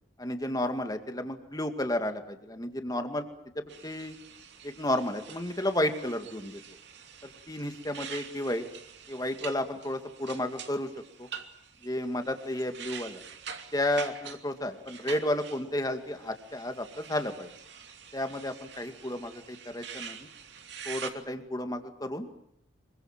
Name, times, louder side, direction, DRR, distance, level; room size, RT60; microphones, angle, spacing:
voice 1, 0.2-3.3 3.6-4.1 4.6-6.6 7.2-8.6 9.1-10.9 11.2-11.3 11.8-13.2 13.7-17.5 18.1-20.3 20.8-22.3, left 1 dB, 20° left, 6 dB, 2.2 m, -32 dB
sound 1, 3.7-21.1, right 7 dB, 60° right, 2.7 m, -46 dB
26.5 x 23.5 x 7.5 m, 0.72 s
head